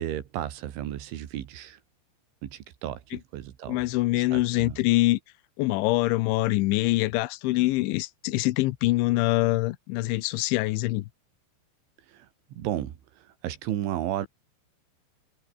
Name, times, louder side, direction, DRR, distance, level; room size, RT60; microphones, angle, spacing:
voice 1, 0.0-1.8 2.4-3.0 3.3-3.8 4.3-4.8 12.1-13.0 13.4-14.3, right 11 dB, 90° right, 4.5 m, -33 dB
voice 2, 3.7-5.2 5.6-11.1, left 19 dB, 90° left, 3.2 m, -24 dB
omnidirectional pair, 5.3 m